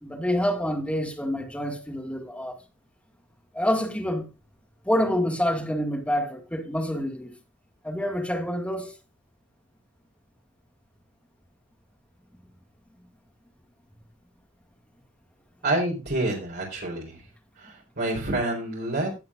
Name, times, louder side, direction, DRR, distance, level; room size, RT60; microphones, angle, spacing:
voice 1, 0.0-2.6 3.5-4.3 4.8-7.4 7.8-8.9, equal, 5° left, 2.0 m, -27 dB
voice 2, 15.6-17.2 17.6-19.2, right 2 dB, 50° right, 4.0 m, -28 dB
18.5 x 7.6 x 2.5 m
head